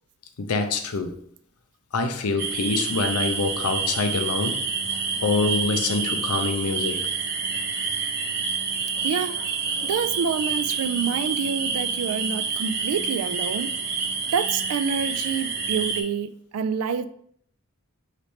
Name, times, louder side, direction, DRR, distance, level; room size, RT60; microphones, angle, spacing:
voice 1, 0.4-1.1 1.9-4.6 5.2-7.0, left 3 dB, 90° left, 0.6 m, -25 dB
sound 1, 2.4-16.0, right 5 dB, 45° right, 0.7 m, -28 dB
voice 2, 9.0-9.4 9.8-13.7 14.3-17.1, right 7 dB, 85° right, 0.3 m, -27 dB
5.0 x 3.2 x 2.8 m
head